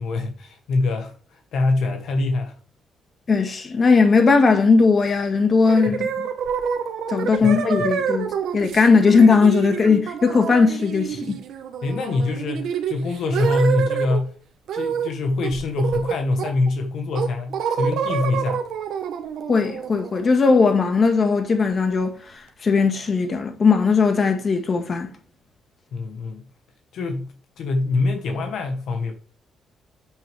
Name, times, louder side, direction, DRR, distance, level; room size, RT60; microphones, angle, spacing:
voice 1, 0.0-2.6 5.8-6.0 7.3-7.6 11.8-14.3 14.7-18.6 25.9-26.4 26.9-29.1, left 3 dB, 70° left, 1.5 m, -24 dB
voice 2, 3.3-6.3 7.1-11.4 19.5-22.1 22.6-25.1, left 4 dB, 40° left, 1.8 m, -18 dB
sound 1, 5.7-14.2 14.7-15.1 15.4-16.7 17.1-20.9, right 7 dB, 75° right, 1.4 m, -27 dB
8.3 x 6.6 x 3.5 m
cardioid pair, 90°, 0 cm